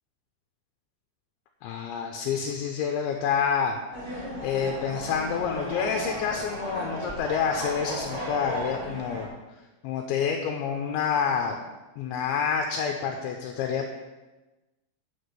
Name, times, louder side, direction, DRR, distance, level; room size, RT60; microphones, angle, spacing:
voice 1, 1.6-3.8 4.1-9.3 9.8-11.6 12.0-13.9, left 6 dB, 80° left, 3 dB, 2.9 m, -28 dB
sound 1, 3.9-9.2, equal, 15° right, 1.5 m, -35 dB
9.8 x 6.0 x 6.7 m, 1.1 s
omnidirectional pair, 5.7 m